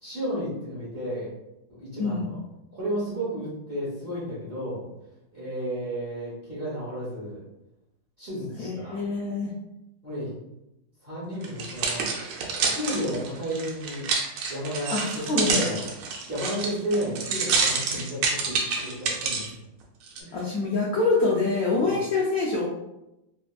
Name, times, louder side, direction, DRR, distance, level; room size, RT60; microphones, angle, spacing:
voice 1, 0.0-1.3 1.7-2.4 2.7-4.8 5.3-7.4 8.2-9.0 10.0-10.4 11.0-12.1 12.7-14.1 14.5-15.9 16.3-19.4 20.2-20.4 21.8-22.0, equal, 40° right, -9 dB, 0.8 m, -32 dB
voice 2, 8.6-9.5 14.9-15.6 20.3-22.7, left 3 dB, 75° left, -5 dB, 0.8 m, -25 dB
sound 1, 11.4-19.5 20.1-20.2, right 4 dB, 85° right, 1.3 m, -28 dB
3.3 x 2.3 x 2.3 m, 0.91 s
omnidirectional pair, 2.0 m